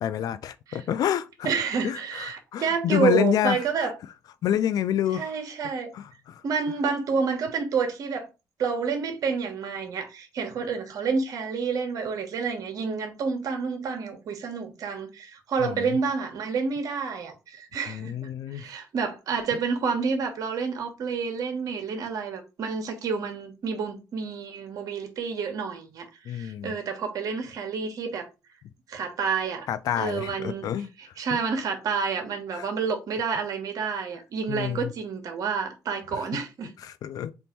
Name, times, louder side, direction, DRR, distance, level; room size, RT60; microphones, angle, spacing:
voice 1, 0.0-1.5 1.8-3.6 4.4-5.3 5.9-6.4 15.6-16.0 17.9-18.6 26.3-26.7 29.7-30.9 31.3-31.4 32.5-32.7 34.5-34.9 36.1-36.2 36.8-37.3, left 10 dB, 70° left, 0.4 m, -28 dB
voice 2, 1.4-3.9 5.1-5.9 6.4-8.3 8.6-18.1 18.5-28.3 28.9-29.7 30.0-30.7 31.0-36.7, right 5 dB, 60° right, 1.1 m, -29 dB
3.5 x 2.5 x 4.3 m
supercardioid pair, 70°, 7 cm